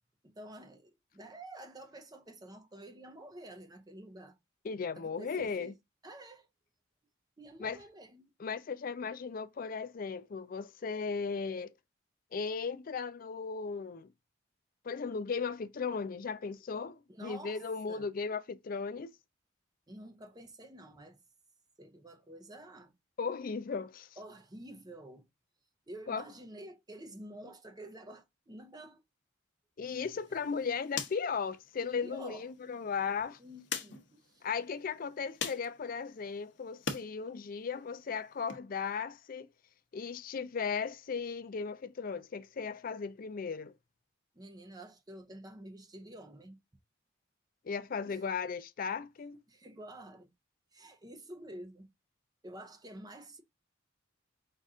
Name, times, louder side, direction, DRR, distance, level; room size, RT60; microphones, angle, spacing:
voice 1, 0.2-4.4 5.0-5.7 6.0-6.5 7.4-8.3 17.1-18.1 19.9-21.2 21.8-22.9 24.2-25.3 25.9-29.0 32.0-32.5 33.4-34.5 44.3-46.6 48.1-48.2 49.5-50.3 50.7-51.9 52.4-53.4, right 1 dB, 20° right, 0.6 m, -49 dB
voice 2, 4.6-5.7 7.6-7.8 8.4-11.7 12.3-14.1 14.8-19.1 23.2-24.1 26.1-26.2 29.8-33.4 34.4-39.5 39.9-43.7 47.6-49.4, left 5 dB, 45° left, 0.4 m, -36 dB
sound 1, 29.9-37.1 37.4-38.6, left 6 dB, 60° left, 0.8 m, -44 dB
5.5 x 2.5 x 3.6 m
head